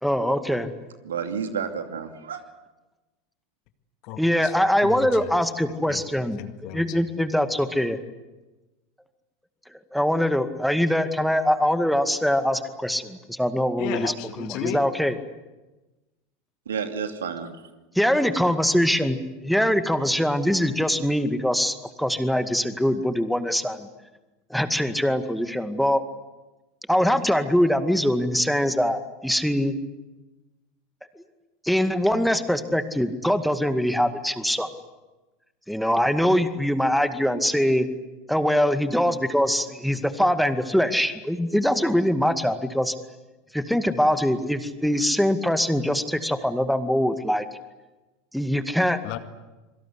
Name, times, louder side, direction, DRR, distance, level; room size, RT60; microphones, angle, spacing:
voice 1, 0.0-0.7 4.2-6.4 6.7-8.0 9.9-14.1 14.4-15.1 18.0-23.9 24.5-26.0 26.9-29.8 31.6-34.7 35.7-37.9 38.3-42.9 43.5-47.4 48.3-49.0, equal, ahead, 9 dB, 2.1 m, -23 dB
voice 2, 1.0-2.4 16.7-17.5, right 6 dB, 70° right, 6 dB, 2.6 m, -30 dB
voice 3, 4.0-4.5 4.8-5.3 5.9-6.0 6.4-7.0 13.8-14.8 49.0-49.2, left 12 dB, 50° left, 9 dB, 2.1 m, -34 dB
26.5 x 24.0 x 8.2 m, 1.1 s
figure-of-eight pair, 80°, 0 cm